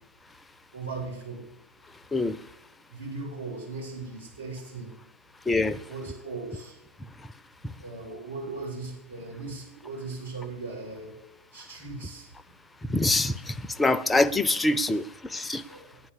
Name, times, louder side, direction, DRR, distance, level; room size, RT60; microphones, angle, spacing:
voice 1, 0.7-1.4 2.9-4.9 5.9-6.8 7.8-11.2 11.5-12.3 15.7-15.9, right 3 dB, 85° right, 6.1 m, -38 dB
voice 2, 5.5-5.8 12.9-15.0 15.3-15.6, left 2 dB, 10° left, 0.5 m, -24 dB
9.8 x 9.2 x 8.5 m
figure-of-eight pair, 90°, 0 cm